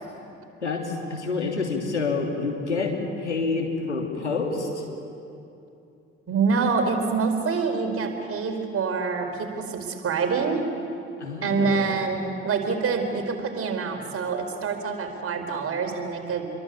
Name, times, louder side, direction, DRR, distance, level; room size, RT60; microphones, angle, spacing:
voice 1, 0.6-2.9 3.2-4.8 11.2-11.9, left 4 dB, 90° left, 1 dB, 3.0 m, -28 dB
voice 2, 6.3-10.6 11.4-16.4, right 5 dB, 40° right, 5 dB, 4.7 m, -26 dB
29.0 x 22.5 x 8.5 m, 2.7 s
figure-of-eight pair, 50°, 33 cm